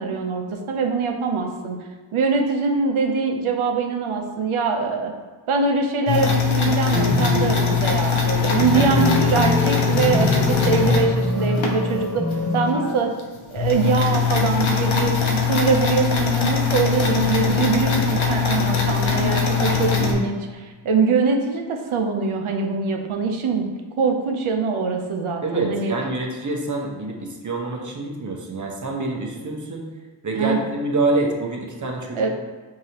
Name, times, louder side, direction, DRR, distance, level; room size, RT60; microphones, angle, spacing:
voice 1, 0.0-1.8 2.1-5.1 5.5-12.2 12.5-13.1 13.5-23.7 24.0-25.9 30.3-30.6 32.1-32.3, right 4 dB, 80° right, 3 dB, 0.6 m, -23 dB
sound 1, 6.1-11.7 12.3-12.4 12.8-12.9 13.2-20.1, left 6 dB, 70° left, 0.7 m, -21 dB
sound 2, 6.9-13.4 13.7-13.8 15.5-16.2 17.3-18.0, left 1 dB, 5° left, 1.3 m, -25 dB
voice 2, 25.4-29.8 30.2-32.3, right 2 dB, 40° right, 1 dB, 0.7 m, -26 dB
4.8 x 2.8 x 2.8 m, 1.4 s
wide cardioid pair, 85°, 48 cm